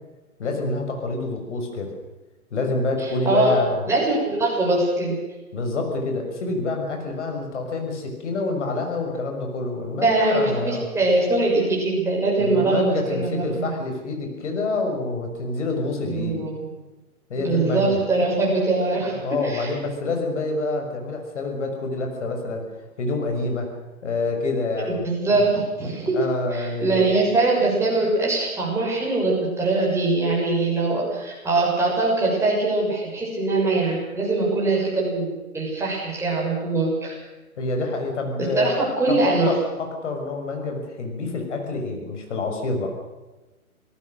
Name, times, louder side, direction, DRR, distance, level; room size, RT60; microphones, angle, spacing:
voice 1, 0.4-1.9 2.5-3.9 5.5-10.9 12.4-16.4 17.3-18.1 19.2-22.6 23.0-23.7 24.0-24.9 25.3-25.5 26.1-27.1 37.6-38.8 39.1-42.9, left 2 dB, 50° left, 3 dB, 6.4 m, -27 dB
voice 2, 3.0-3.6 3.9-5.1 9.9-13.6 16.1-16.5 17.4-19.7 24.8-26.2 26.5-37.2 38.5-39.5, right 2 dB, 5° right, -4 dB, 6.8 m, -22 dB
27.5 x 18.5 x 6.6 m, 1.1 s
figure-of-eight pair, 130°, 44 cm